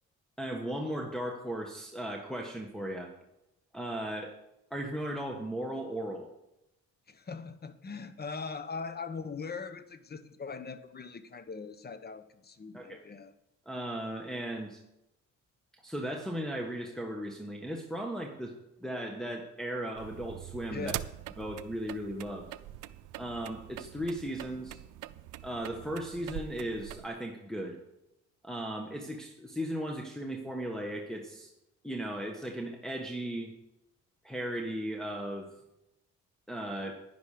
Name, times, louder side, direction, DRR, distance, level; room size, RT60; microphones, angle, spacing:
voice 1, 0.4-3.1 3.7-4.4 4.7-6.3 12.7-13.0 13.6-14.8 15.8-18.5 18.8-20.9 21.4-22.5 23.2-24.8 25.4-27.8 28.4-31.5 31.8-33.5 34.2-35.5 36.5-37.0, right 1 dB, ahead, 0 dB, 1.5 m, -36 dB
voice 2, 7.1-13.3 20.7-21.0, left 5 dB, 30° left, 12 dB, 1.1 m, -41 dB
sound 1, 19.9-27.1, right 14 dB, 85° right, 0.5 m, -43 dB
10.5 x 10.5 x 5.1 m, 0.90 s
cardioid pair, 90°, 30 cm